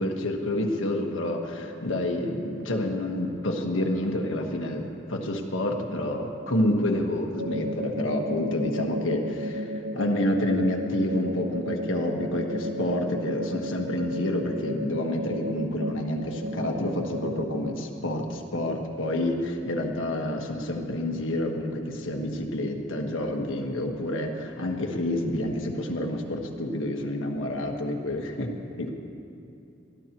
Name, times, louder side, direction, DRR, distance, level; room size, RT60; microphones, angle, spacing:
voice 1, 0.0-4.8 5.1-28.5 28.8-28.9, left 1 dB, 80° left, 2 dB, 1.5 m, -28 dB
sound 1, 7.4-17.7, equal, 60° right, 0.7 m, -33 dB
23.0 x 14.5 x 3.0 m, 2.7 s
head